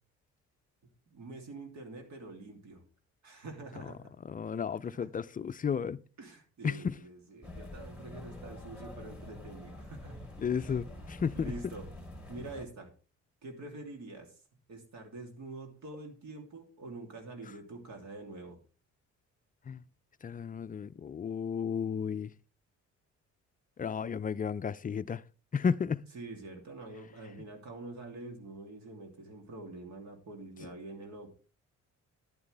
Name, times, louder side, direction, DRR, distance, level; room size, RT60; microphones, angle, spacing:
voice 1, 1.1-2.8 3.2-4.1 4.8-5.1 6.2-10.3 10.6-10.7 11.3-11.9 12.3-12.9 13.4-14.3 14.7-18.6 26.1-31.3, right 2 dB, 65° right, 2.9 m, -46 dB
voice 2, 4.3-6.0 6.6-7.0 10.4-11.5 19.7-19.8 20.2-22.3 23.8-25.2 25.5-26.0, left 6 dB, 30° left, 0.4 m, -33 dB
sound 1, 7.4-12.6, left 2 dB, 5° right, 3.3 m, -46 dB
10.5 x 9.5 x 3.4 m
cardioid pair, 90°, 30 cm